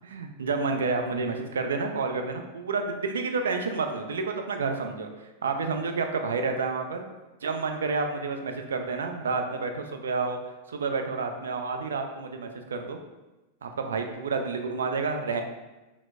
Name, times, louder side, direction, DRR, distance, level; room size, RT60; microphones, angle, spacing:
voice 1, 0.0-7.1 7.4-10.4 10.7-13.0 13.6-15.4, right 4 dB, 65° right, 5 dB, 0.4 m, -29 dB
5.7 x 2.0 x 2.3 m, 1.1 s
figure-of-eight pair, 90°, 0 cm